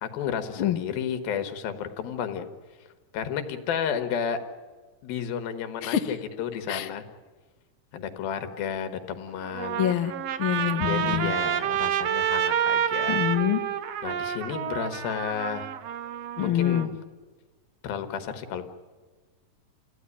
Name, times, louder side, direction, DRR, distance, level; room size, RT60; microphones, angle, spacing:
voice 1, 0.0-2.5 3.1-4.4 5.0-7.0 7.9-9.8 10.7-13.2 14.0-15.7 16.4-16.9 17.8-18.7, left 8 dB, 85° left, 9 dB, 3.4 m, -32 dB
voice 2, 5.8-6.1 6.7-6.9 9.8-11.3 13.1-13.6 16.4-16.9, left 11 dB, 65° left, 7 dB, 1.3 m, -26 dB
Trumpet, 9.4-16.9, right 9 dB, 70° right, 1.5 m, -29 dB
28.5 x 16.0 x 10.0 m, 1.4 s
omnidirectional pair, 4.1 m